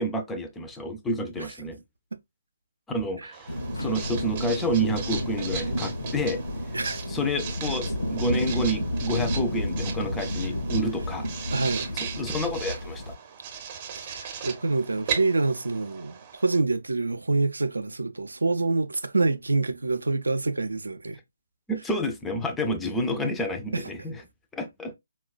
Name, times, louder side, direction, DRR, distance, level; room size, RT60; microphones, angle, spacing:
voice 1, 0.0-1.8 2.9-6.4 7.1-11.3 12.0-13.1 21.7-24.2 24.5-24.9, equal, 10° left, 0.4 m, -29 dB
Writing, 3.3-16.6, right 7 dB, 35° right, 0.7 m, -38 dB
sound 1, 3.5-13.1, left 1 dB, 80° left, 0.5 m, -31 dB
voice 2, 11.5-11.9 14.0-21.2 23.7-23.9, right 3 dB, 70° right, 0.4 m, -26 dB
3.9 x 2.2 x 2.2 m
figure-of-eight pair, 140°, 0 cm